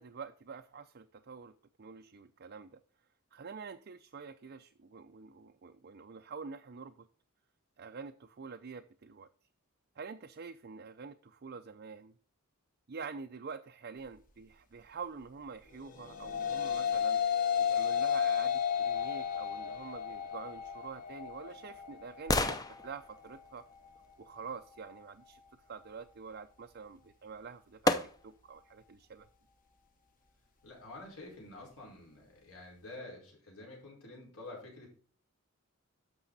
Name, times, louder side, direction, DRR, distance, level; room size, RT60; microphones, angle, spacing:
voice 1, 0.0-2.8 3.3-7.1 7.8-9.3 10.0-12.1 12.9-17.2 17.7-23.6 24.2-25.4 25.7-27.9 28.2-29.3, right 5 dB, 45° right, 6 dB, 0.5 m, -47 dB
sound 1, 15.8-25.0, left 8 dB, 35° left, 1.0 m, -34 dB
sound 2, 20.7-24.9 27.0-27.1 27.9-28.5 29.0-29.1, left 2 dB, 15° left, 0.6 m, -36 dB
voice 2, 30.6-34.9, left 2 dB, 75° left, -2 dB, 4.8 m, -49 dB
11.5 x 6.2 x 4.0 m, 0.43 s
head